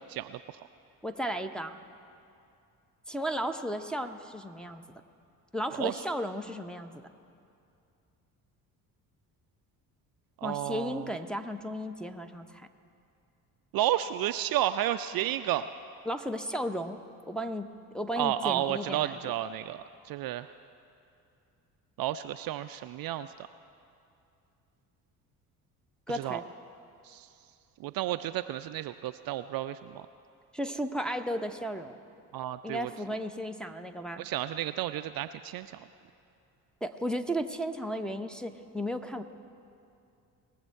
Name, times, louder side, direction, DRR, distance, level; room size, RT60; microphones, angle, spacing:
voice 1, 1.0-1.8 3.1-4.8 5.5-7.1 10.4-12.7 16.0-17.0 17.3-19.3 26.1-26.4 30.5-32.0 32.6-34.3 36.8-39.2, equal, ahead, 4 dB, 0.7 m, -34 dB
voice 2, 10.4-11.1 13.7-15.7 18.2-20.5 22.0-23.3 26.1-26.4 27.0-27.3 27.8-30.0 32.3-32.9 34.2-35.8, right 13 dB, 50° right, 11 dB, 0.5 m, -32 dB
20.0 x 7.4 x 4.5 m, 2.5 s
hypercardioid pair, 50°, 48 cm